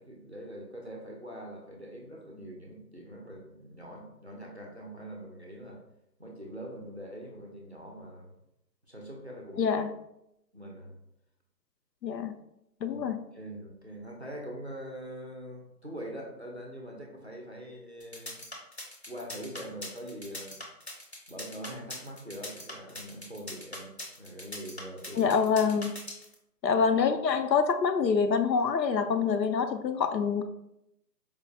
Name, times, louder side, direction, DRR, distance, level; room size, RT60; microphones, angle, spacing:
voice 1, 0.0-5.8 6.2-8.3 8.9-9.7 10.5-11.0 12.9-13.0 13.3-18.4 19.1-20.6 21.3-25.4, equal, 45° right, -1 dB, 0.5 m, -43 dB
voice 2, 9.6-9.9 12.0-12.4 12.8-13.2 25.1-25.9 26.6-30.4, left 6 dB, 85° left, 8 dB, 0.6 m, -26 dB
sound 1, 18.0-26.3, left 1 dB, 40° left, 0.6 m, -41 dB
4.5 x 2.1 x 2.6 m, 0.82 s
figure-of-eight pair, 165°, 50 cm